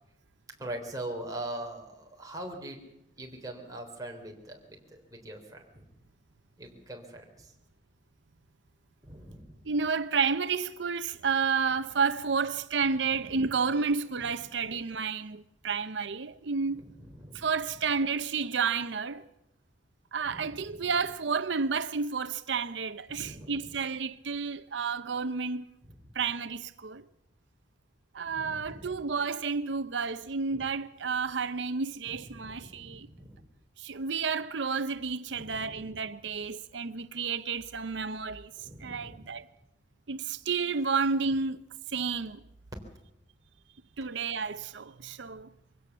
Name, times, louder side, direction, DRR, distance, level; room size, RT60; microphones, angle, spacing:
voice 1, 0.6-2.8 3.2-5.8 6.6-7.5 9.0-9.5 12.8-12.9 13.2-13.6 14.2-14.5 16.7-18.0 20.2-21.1 23.1-23.8 25.8-26.1 28.3-29.0 30.5-30.7 32.0-33.5 35.3-36.0 38.6-39.4 41.2-41.4, right 1 dB, 20° right, 3.5 m, -43 dB
voice 2, 9.6-16.8 17.3-19.3 20.1-25.8 26.1-27.0 28.1-33.1 33.8-39.5 40.1-41.6 41.9-42.4 44.0-45.5, right 5 dB, 90° right, 0.7 m, -31 dB
23.5 x 16.5 x 7.2 m
head